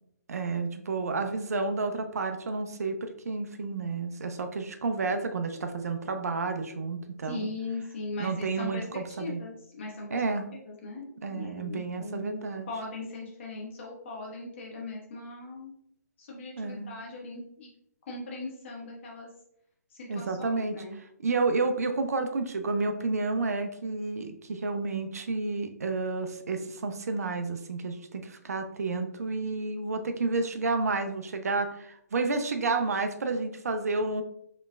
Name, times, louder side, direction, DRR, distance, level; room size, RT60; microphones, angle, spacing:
voice 1, 0.3-7.4 8.2-9.4 10.1-10.5 11.2-12.7 16.6-16.9 20.1-20.8 21.2-34.2, right 3 dB, 60° right, 7 dB, 0.5 m, -30 dB
voice 2, 7.2-8.8 9.1-10.2 10.5-12.4 12.7-15.7 16.2-17.7 18.1-19.3 19.9-21.0, left 2 dB, 45° left, -2 dB, 1.4 m, -39 dB
5.0 x 3.1 x 2.2 m, 0.75 s
figure-of-eight pair, 135°, 9 cm